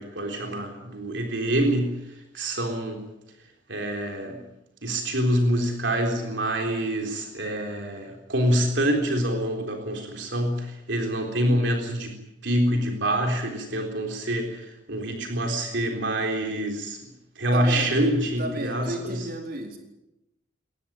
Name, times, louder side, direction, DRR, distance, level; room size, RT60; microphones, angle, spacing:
voice 1, 0.0-1.9 2.3-3.0 3.7-4.4 4.8-12.1 12.4-17.0 17.4-19.2, right 1 dB, 65° right, 3 dB, 3.9 m, -26 dB
voice 2, 17.5-18.0 18.4-19.8, right 1 dB, 50° right, 2 dB, 4.3 m, -33 dB
22.5 x 19.0 x 9.1 m, 0.91 s
head